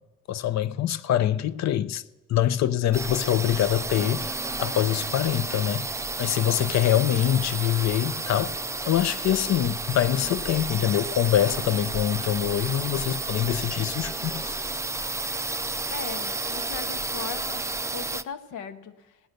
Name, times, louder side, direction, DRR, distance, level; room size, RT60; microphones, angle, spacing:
voice 1, 0.3-2.0 2.3-4.3 4.6-5.9 6.2-8.6 8.9-14.5, left 11 dB, 60° left, 0.6 m, -24 dB
sound 1, 2.9-18.2, right 3 dB, 10° right, 0.4 m, -32 dB
voice 2, 15.9-17.6 17.9-18.9, left 7 dB, 85° left, 1.0 m, -38 dB
17.0 x 9.3 x 6.6 m
cardioid pair, 90°, 30 cm